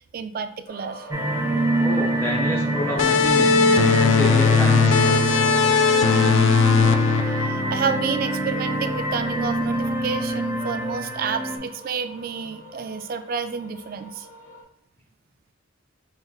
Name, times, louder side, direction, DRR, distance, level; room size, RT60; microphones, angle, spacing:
voice 1, 0.1-1.6 6.6-6.8 7.3-14.3, right 6 dB, 50° right, 9 dB, 0.4 m, -30 dB
sound 1, 0.7-14.6, right 1 dB, 45° left, 1.5 m, -42 dB
sound 2, 1.1-11.6, right 2 dB, 15° right, 0.8 m, -25 dB
voice 2, 1.8-3.6 4.0-5.2, left 1 dB, 10° left, -3 dB, 0.6 m, -28 dB
sound 3, 3.0-8.3, left 5 dB, 75° left, 0.4 m, -19 dB
5.6 x 3.8 x 2.4 m, 0.69 s
head